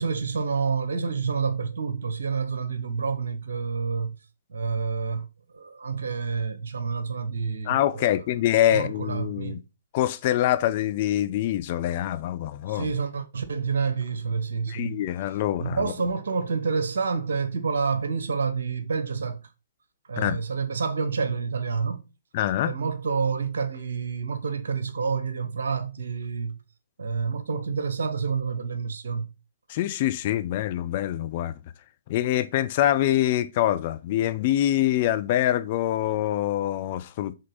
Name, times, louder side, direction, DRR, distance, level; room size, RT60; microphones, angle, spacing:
voice 1, 0.0-4.2 4.5-8.2 8.7-9.6 12.7-15.0 15.6-19.4 20.1-22.0 22.6-26.6 27.0-29.3, right 5 dB, 65° right, 1.1 m, -28 dB
voice 2, 7.7-9.6 9.9-12.9 14.7-15.9 20.2-20.4 22.3-22.7 29.7-31.6 32.1-37.3, left 13 dB, 40° left, 0.6 m, -25 dB
5.5 x 3.8 x 5.5 m
figure-of-eight pair, 120°, 0 cm